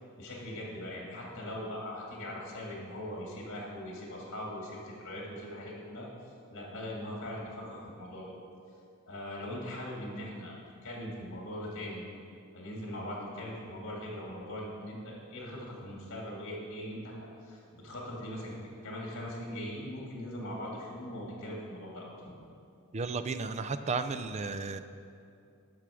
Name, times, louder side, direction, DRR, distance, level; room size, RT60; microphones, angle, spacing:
voice 1, 0.2-6.1 6.5-8.3 9.1-10.5 10.8-12.0 12.5-18.5 18.8-22.1, left 1 dB, 55° left, -3 dB, 2.1 m, -40 dB
voice 2, 22.9-24.8, right 4 dB, 30° right, 11 dB, 0.4 m, -33 dB
12.5 x 6.1 x 4.9 m, 2.5 s
head